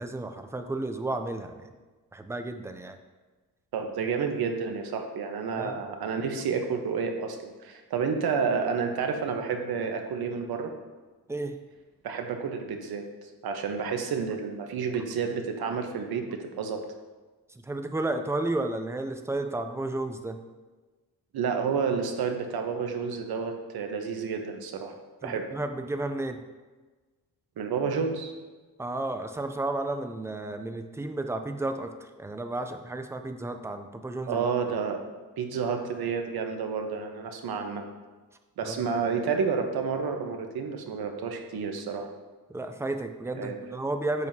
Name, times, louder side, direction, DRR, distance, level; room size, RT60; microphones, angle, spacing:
voice 1, 0.0-1.7 2.1-3.0 5.5-5.8 11.3-11.6 17.5-20.4 25.2-26.4 28.8-34.4 38.6-38.9 42.5-44.3, right 2 dB, 10° right, 7 dB, 0.3 m, -32 dB
voice 2, 3.7-10.7 12.0-13.1 13.4-16.8 21.3-25.0 25.2-25.5 27.6-28.3 34.3-35.1 35.4-37.9 38.6-42.1 43.3-43.6, right 5 dB, 75° right, 4 dB, 1.1 m, -30 dB
9.4 x 7.6 x 2.8 m, 1.3 s
wide cardioid pair, 175°, 37 cm